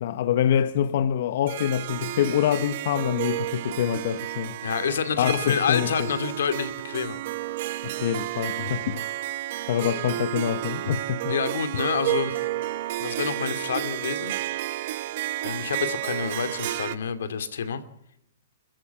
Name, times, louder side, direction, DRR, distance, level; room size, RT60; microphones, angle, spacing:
voice 1, 0.0-4.6 5.2-5.9 7.8-9.0 9.7-11.3, left 10 dB, 50° left, 0.8 m, -25 dB
Harp, 1.5-17.0, right 15 dB, 45° right, 0.9 m, -31 dB
voice 2, 4.6-7.2 11.3-12.5 13.0-14.4 15.4-17.8, left 7 dB, 80° left, 2.7 m, -28 dB
27.0 x 14.0 x 7.2 m
hypercardioid pair, 165°, 0 cm